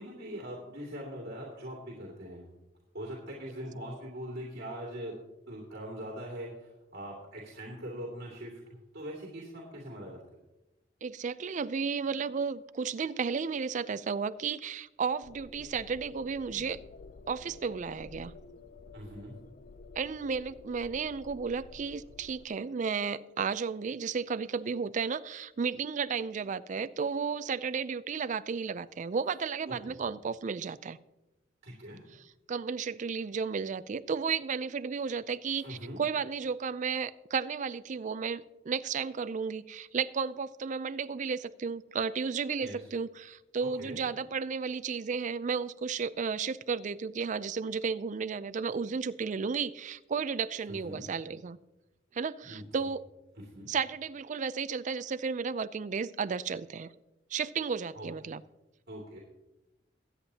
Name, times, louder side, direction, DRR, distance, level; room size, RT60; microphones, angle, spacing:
voice 1, 0.0-2.5 2.9-5.1 5.5-8.5 8.9-10.2 18.9-19.3 29.7-30.0 31.6-32.0 35.5-36.0 42.6-42.9 43.6-44.0 50.7-51.0 52.4-52.6 53.4-53.7 57.9-58.1 58.9-59.2, equal, 60° right, -3 dB, 2.4 m, -42 dB
voice 2, 11.0-16.8 17.3-18.3 20.0-31.0 32.5-51.6 52.1-53.1 53.7-56.9 57.3-58.4, right 5 dB, 40° right, 14 dB, 0.4 m, -33 dB
sound 1, 15.2-22.4, left 4 dB, 50° left, 0.4 m, -51 dB
22.5 x 8.7 x 2.8 m, 0.99 s
head